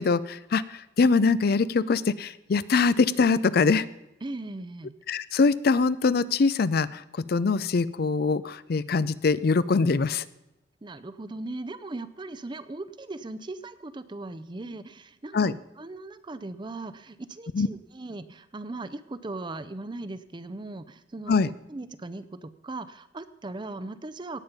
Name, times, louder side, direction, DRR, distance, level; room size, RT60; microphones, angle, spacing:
voice 1, 0.0-3.9 5.1-10.2 15.3-15.5 17.5-17.7 21.3-21.5, left 4 dB, 55° left, 17 dB, 0.4 m, -23 dB
voice 2, 4.2-4.9 10.8-24.4, right 2 dB, 25° right, 12 dB, 0.5 m, -38 dB
18.5 x 7.3 x 5.3 m, 0.88 s
head